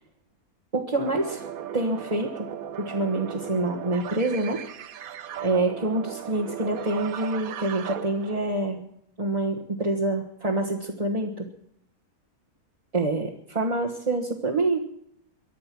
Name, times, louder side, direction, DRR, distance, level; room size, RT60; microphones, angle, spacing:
voice 1, 0.7-1.5 1.7-2.5 2.8-4.6 5.4-8.9 9.2-11.5 12.9-14.8, right 2 dB, 25° right, -2 dB, 1.4 m, -26 dB
sound 1, 0.9-8.6, right 9 dB, 70° right, 1.2 m, -37 dB
23.5 x 10.0 x 6.1 m, 0.73 s
omnidirectional pair, 1.6 m